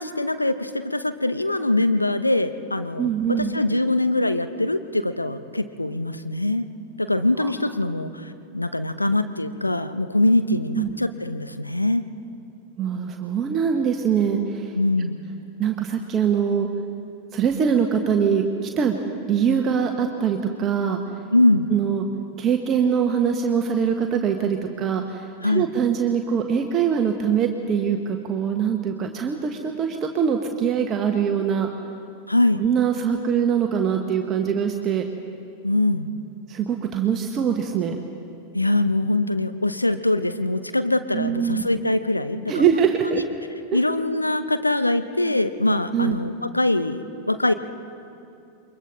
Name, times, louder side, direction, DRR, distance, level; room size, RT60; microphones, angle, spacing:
voice 1, 0.0-3.1 3.4-6.7 7.0-12.0 14.7-15.2 21.3-21.7 25.4-25.7 32.3-32.6 35.6-36.1 38.5-43.2 43.7-47.5, left 2 dB, 85° left, 10 dB, 0.8 m, -23 dB
voice 2, 3.0-3.5 7.4-7.5 10.5-10.9 12.8-14.7 15.6-16.7 17.3-19.0 19.3-21.0 21.7-22.1 22.4-31.7 32.6-35.0 36.5-38.0 41.1-41.7 42.5-43.2 45.9-46.2, right 7 dB, 30° right, 4 dB, 1.3 m, -23 dB
28.5 x 23.0 x 4.0 m, 2.5 s
figure-of-eight pair, 90°, 0 cm